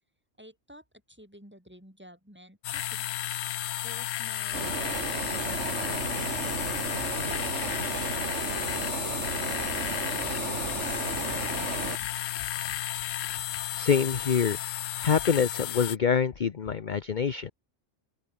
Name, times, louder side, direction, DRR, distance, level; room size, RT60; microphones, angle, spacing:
voice 1, 0.4-3.4 3.8-6.7 7.2-11.0, equal, 10° right, 5.4 m, -52 dB
sound 1, 2.6-16.0, left 13 dB, 85° left, 1.0 m, -33 dB
sound 2, 4.5-12.0, right 5 dB, 65° right, 1.9 m, -34 dB
voice 2, 13.8-14.6 15.0-17.5, left 7 dB, 40° left, 0.9 m, -25 dB
open air
omnidirectional pair, 1.3 m